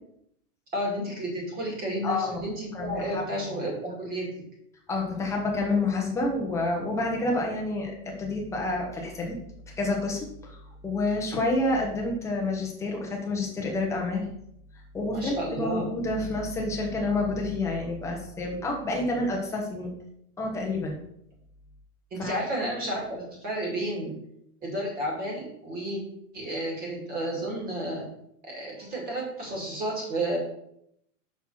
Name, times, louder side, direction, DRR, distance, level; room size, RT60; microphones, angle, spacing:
voice 1, 0.7-4.3 15.1-15.8 22.1-24.1 24.6-26.0 26.3-28.0 28.5-30.4, right 1 dB, 20° right, -1 dB, 2.2 m, -31 dB
voice 2, 2.0-2.4 2.7-3.2 4.9-9.4 9.8-14.3 14.9-19.9 20.4-21.0 22.2-22.4, left 2 dB, 5° left, 0 dB, 0.8 m, -29 dB
6.0 x 4.2 x 5.6 m, 0.73 s
hypercardioid pair, 160°, 45 cm